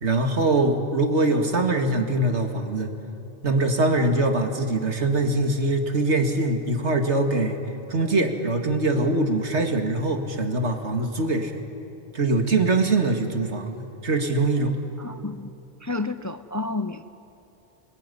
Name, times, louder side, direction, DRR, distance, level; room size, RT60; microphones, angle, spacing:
voice 1, 0.0-2.9 3.4-7.6 7.9-11.5 12.1-14.7, right 2 dB, 75° right, 4 dB, 2.5 m, -23 dB
voice 2, 15.0-15.5 15.8-17.0, left 3 dB, 20° left, 11 dB, 0.5 m, -30 dB
28.0 x 21.0 x 10.0 m, 2.9 s
omnidirectional pair, 1.2 m